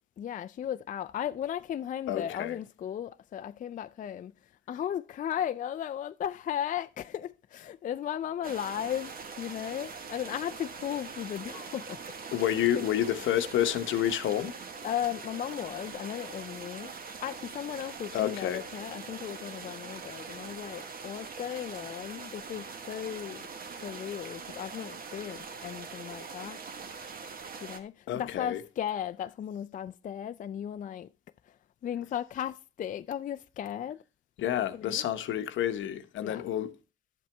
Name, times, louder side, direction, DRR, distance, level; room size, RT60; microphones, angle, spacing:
voice 1, 0.2-4.3 4.7-9.1 9.4-12.0 12.7-12.8 14.8-16.9 17.2-23.5 23.8-26.6 27.6-31.1 31.8-34.0 34.7-35.0 36.2-36.4, left 10 dB, 40° left, 0.4 m, -36 dB
voice 2, 2.1-2.6 12.3-14.5 18.1-18.6 28.1-28.6 34.4-36.7, left 11 dB, 75° left, 0.9 m, -29 dB
sound 1, 8.4-27.8, right 5 dB, 45° right, 1.2 m, -43 dB
11.0 x 7.6 x 3.2 m
cardioid pair, 90°, 20 cm